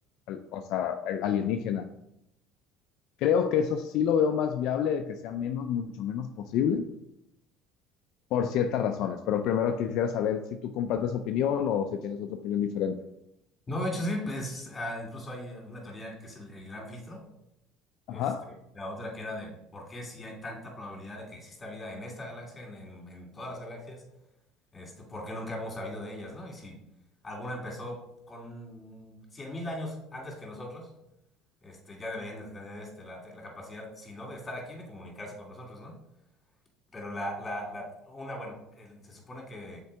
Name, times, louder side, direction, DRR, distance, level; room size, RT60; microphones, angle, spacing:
voice 1, 0.3-1.9 3.2-6.9 8.3-13.0 18.1-18.5, left 8 dB, 65° left, 6 dB, 0.4 m, -28 dB
voice 2, 13.7-17.2 18.1-24.0 24.7-26.8 27.2-28.0 28.3-30.9 31.6-35.9 36.9-39.8, left 1 dB, 20° left, -1 dB, 2.4 m, -39 dB
6.4 x 4.5 x 3.4 m, 0.83 s
supercardioid pair, 95°, 0 cm